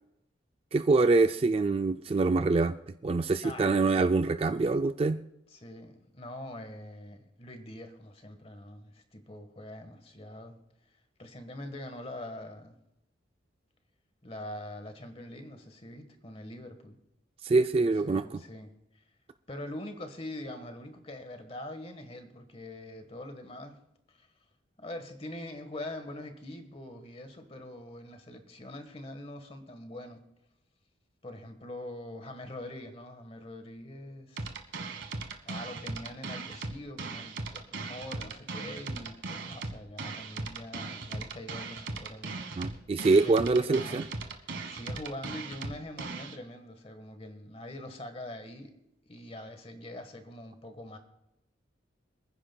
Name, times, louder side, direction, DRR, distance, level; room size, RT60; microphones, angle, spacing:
voice 1, 0.7-2.8 3.0-5.2 17.4-18.4 42.6-44.0, right 3 dB, 30° right, 0.3 m, -25 dB
voice 2, 3.4-4.1 5.5-10.6 11.2-12.8 14.2-17.0 17.8-19.0 19.5-23.8 24.1-24.3 24.8-30.2 31.2-34.5 35.4-42.4 43.2-44.0 44.4-48.7 49.1-51.0, left 1 dB, 30° left, 1.3 m, -44 dB
sound 1, 34.4-46.4, right 3 dB, 70° right, 1.3 m, -38 dB
27.0 x 10.0 x 2.2 m
head